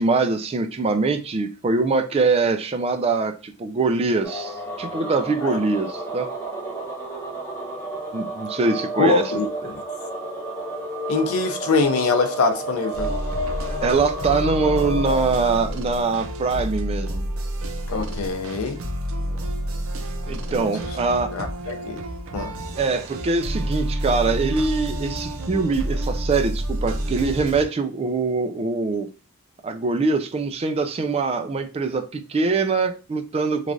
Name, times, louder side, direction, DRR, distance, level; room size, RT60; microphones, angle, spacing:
voice 1, 0.0-6.3 8.1-9.3 13.8-17.2 20.3-21.3 22.8-29.1 29.6-33.7, right 4 dB, 30° right, 0.3 m, -23 dB
sound 1, 4.2-15.2, right 1 dB, 15° left, 0.9 m, -31 dB
voice 2, 9.0-9.8 11.1-13.1 17.9-18.8 20.6-20.7 21.3-22.0 22.3-22.5, left 4 dB, 85° left, 0.5 m, -23 dB
sound 2, 12.9-27.6, right 1 dB, 80° right, 0.5 m, -29 dB
3.1 x 2.4 x 2.5 m
head